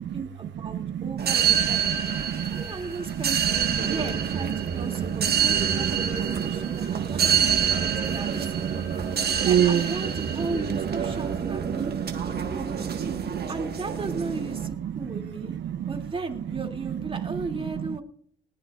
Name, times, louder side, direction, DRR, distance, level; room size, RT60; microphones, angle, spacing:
voice 1, 0.1-2.1 2.5-8.6 9.4-11.9 12.3-12.9 13.5-15.6 15.9-18.0, right 3 dB, 25° right, 2.6 m, -36 dB
voice 2, 0.8-1.3 1.7-2.6 3.2-3.3 3.8-3.9 4.6-9.1 9.4-9.9 11.6-12.3 13.1-13.5 14.6-15.2 15.6-15.9, right 10 dB, 70° right, 0.7 m, -29 dB
sound 1, 1.2-14.7, right 7 dB, 55° right, 1.5 m, -27 dB
19.5 x 17.0 x 2.5 m
cardioid pair, 90°, 20 cm